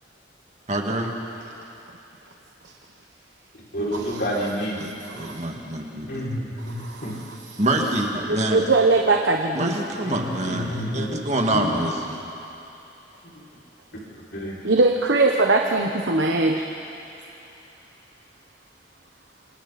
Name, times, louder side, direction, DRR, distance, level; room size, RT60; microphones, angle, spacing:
voice 1, 0.7-1.1 4.8-6.2 7.6-8.6 9.5-12.2, right 1 dB, 40° right, 1 dB, 2.3 m, -26 dB
voice 2, 3.7-4.8 6.1-7.2 10.0-11.1 11.5-11.6 13.3-13.4 14.2-14.6, equal, 65° left, -6 dB, 6.1 m, -29 dB
voice 3, 8.3-9.8 14.6-16.6, right 3 dB, 85° right, 2 dB, 1.1 m, -20 dB
27.5 x 26.5 x 4.3 m, 2.9 s
head